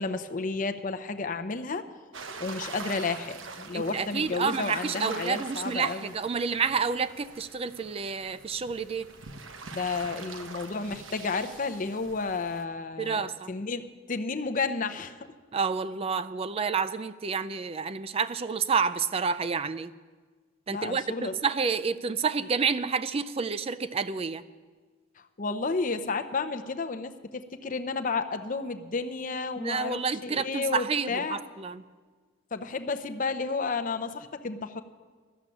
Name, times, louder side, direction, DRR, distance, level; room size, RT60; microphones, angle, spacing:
voice 1, 0.0-1.8 2.4-6.1 9.7-13.8 14.1-15.2 20.7-21.4 25.2-31.4 32.5-34.8, left 4 dB, 40° left, 8 dB, 0.6 m, -32 dB
sound 1, 2.1-12.6, right 4 dB, 65° right, 1.0 m, -43 dB
voice 2, 3.7-9.1 13.0-13.5 15.5-19.9 20.7-24.4 29.6-31.8, right 5 dB, 30° right, 14 dB, 0.4 m, -29 dB
13.0 x 7.4 x 9.9 m, 1.4 s
head